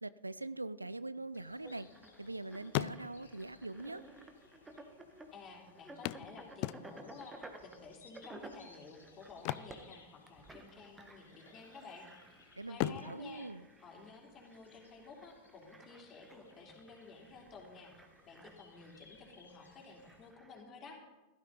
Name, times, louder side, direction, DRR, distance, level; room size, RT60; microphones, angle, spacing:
voice 1, 0.0-1.9 2.2-4.0 12.6-13.7, right 2 dB, 85° right, 18 dB, 0.4 m, -43 dB
sound 1, 1.1-2.3 2.6-3.5 4.4-4.5 4.7-4.8 6.0-7.2 9.3-10.6 10.9-11.1 11.6-12.2 12.7-14.5 16.4-16.5 17.0-17.1, left 18 dB, 45° left, 0.3 m, -40 dB
sound 2, 1.4-20.3, left 4 dB, 70° left, 2.3 m, -64 dB
sound 3, 1.6-20.6, right 2 dB, 10° right, 1.4 m, -56 dB
voice 2, 5.3-12.0 12.7-13.5 13.8-17.9 18.2-21.0, left 4 dB, 30° left, 0 dB, 3.3 m, -53 dB
16.0 x 13.0 x 4.0 m, 1.1 s
figure-of-eight pair, 90°, 0 cm